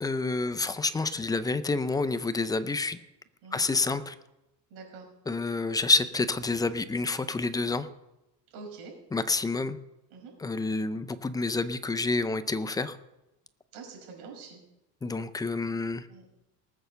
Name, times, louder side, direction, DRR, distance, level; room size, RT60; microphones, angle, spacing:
voice 1, 0.0-3.0 3.5-4.2 5.3-7.9 9.1-9.8 10.4-13.0 15.0-16.1, left 3 dB, 10° left, 12 dB, 0.4 m, -28 dB
voice 2, 4.7-5.1 8.5-9.0 10.1-10.3 13.7-14.6 16.1-16.2, right 4 dB, 85° right, 1 dB, 5.5 m, -45 dB
18.5 x 8.1 x 6.8 m, 0.93 s
cardioid pair, 160°, 39 cm